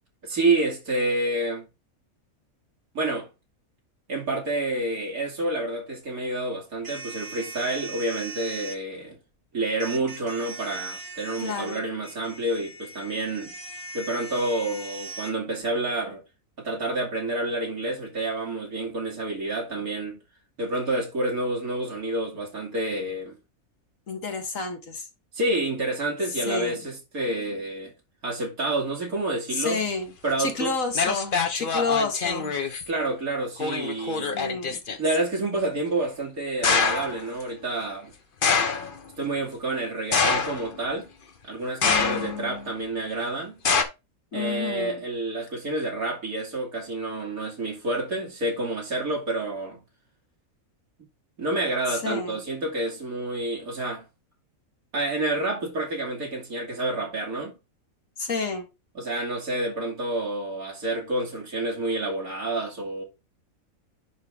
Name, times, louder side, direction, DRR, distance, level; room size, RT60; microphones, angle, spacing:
voice 1, 0.2-1.7 2.9-3.3 4.1-9.2 9.5-13.5 13.9-16.2 16.6-20.2 20.6-23.4 25.3-27.9 28.2-29.8 30.2-30.7 31.8-31.9 32.9-34.4 35.0-38.1 39.2-41.1 41.4-43.6 44.3-49.8 51.4-54.0 54.9-57.5 59.0-63.0, right 2 dB, 80° right, 3.0 m, -28 dB
sound 1, 6.8-8.8 9.8-15.3, right 3 dB, 40° right, 1.4 m, -40 dB
voice 2, 11.4-11.8 24.1-25.1 26.5-26.8 29.5-30.1 30.4-32.6 34.3-34.8 41.8-42.7 44.3-45.0 51.9-52.4 58.2-58.7, left 4 dB, 65° left, 1.8 m, -30 dB
sound 2, 30.5-30.6 30.9-32.9 33.6-35.2 36.6-37.2 38.4-39.0 40.1-40.9 41.8-42.5 43.6-43.8, left 5 dB, 40° left, 1.0 m, -25 dB
10.5 x 3.7 x 3.4 m
omnidirectional pair, 1.5 m